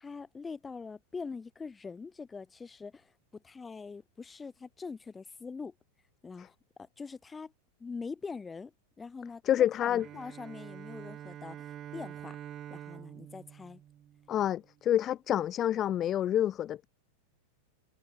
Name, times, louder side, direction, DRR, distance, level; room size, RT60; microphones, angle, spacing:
voice 1, 0.0-5.7 6.2-7.5 7.8-12.4 12.7-13.8, left 4 dB, 15° left, 1.9 m, -43 dB
voice 2, 9.5-10.1 14.3-16.9, left 11 dB, 30° left, 0.5 m, -28 dB
Bowed string instrument, 10.0-14.7, right 11 dB, 30° right, 5.2 m, -46 dB
figure-of-eight pair, 90°, 0 cm